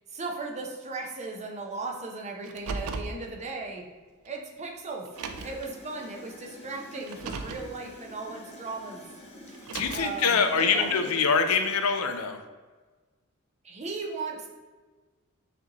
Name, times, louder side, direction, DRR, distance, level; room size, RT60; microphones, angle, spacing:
voice 1, 0.1-3.9 4.2-5.1 5.4-9.0 9.9-11.1 13.6-14.5, right 3 dB, 30° right, 1 dB, 0.6 m, -37 dB
Car, 2.4-3.2 4.3-4.4 5.1-5.7 7.0-7.7 9.5-10.2, right 4 dB, 75° right, 0.4 m, -36 dB
Gurgling / Toilet flush, 5.1-12.2, left 1 dB, 30° left, 0.8 m, -48 dB
voice 2, 9.7-12.4, left 5 dB, 85° left, 7 dB, 0.5 m, -24 dB
6.1 x 2.8 x 2.9 m, 1.3 s
head